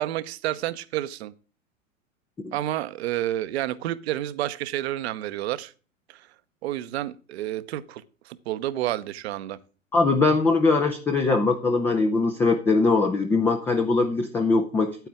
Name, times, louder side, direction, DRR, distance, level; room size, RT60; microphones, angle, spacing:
voice 1, 0.0-1.3 2.5-5.7 6.6-9.6, right 14 dB, 50° right, 0.7 m, -30 dB
voice 2, 9.9-15.1, left 3 dB, 5° left, 0.3 m, -21 dB
9.1 x 9.0 x 3.4 m
figure-of-eight pair, 95°, 40 cm